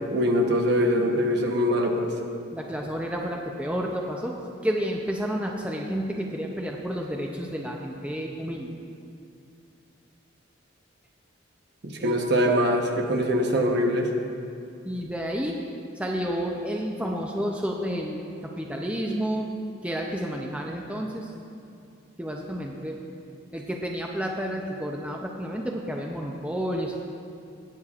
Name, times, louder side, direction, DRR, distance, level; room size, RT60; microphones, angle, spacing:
voice 1, 0.1-2.1 11.8-14.1, equal, 55° right, 2 dB, 0.9 m, -23 dB
voice 2, 2.5-4.4 4.6-8.8 12.0-12.2 14.8-15.6 16.0-19.5 19.8-21.3 22.2-23.0 23.5-27.1, equal, 5° right, 0 dB, 0.5 m, -30 dB
17.0 x 8.3 x 2.4 m, 2.5 s
head